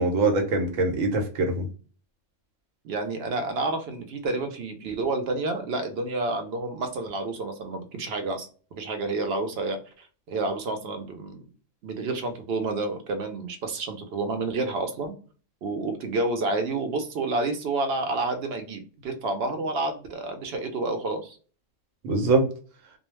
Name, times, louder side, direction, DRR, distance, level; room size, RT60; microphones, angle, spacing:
voice 1, 0.0-1.7 22.0-22.5, right 3 dB, 80° right, 4 dB, 1.0 m, -23 dB
voice 2, 2.8-8.5 8.8-11.5 11.8-15.1 15.6-21.4, right 3 dB, 60° right, 6 dB, 0.7 m, -29 dB
2.3 x 2.1 x 3.1 m, 0.38 s
omnidirectional pair, 1.3 m